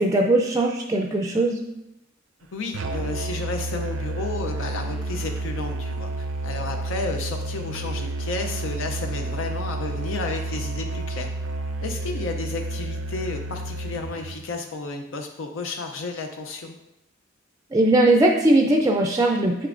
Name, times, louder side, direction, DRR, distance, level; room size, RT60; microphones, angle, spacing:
voice 1, 0.0-1.6 17.7-19.7, right 2 dB, 15° right, 2 dB, 0.4 m, -19 dB
voice 2, 2.5-11.3 11.8-16.8, left 3 dB, 80° left, 4 dB, 0.6 m, -32 dB
Musical instrument, 2.7-14.5, right 2 dB, 85° right, 0.5 m, -30 dB
7.8 x 6.6 x 2.5 m, 0.88 s
head